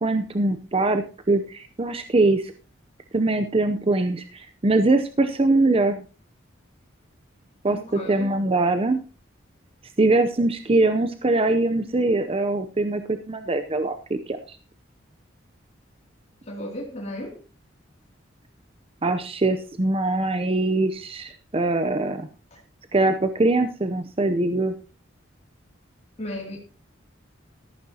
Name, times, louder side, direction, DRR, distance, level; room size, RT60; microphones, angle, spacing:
voice 1, 0.0-2.5 3.1-6.0 7.6-9.0 10.0-14.6 19.0-22.3 22.9-24.7, right 2 dB, 30° right, 0.6 m, -22 dB
voice 2, 7.7-8.4 16.4-17.4 26.2-26.6, left 1 dB, 35° left, 2.6 m, -34 dB
13.5 x 11.5 x 2.8 m
head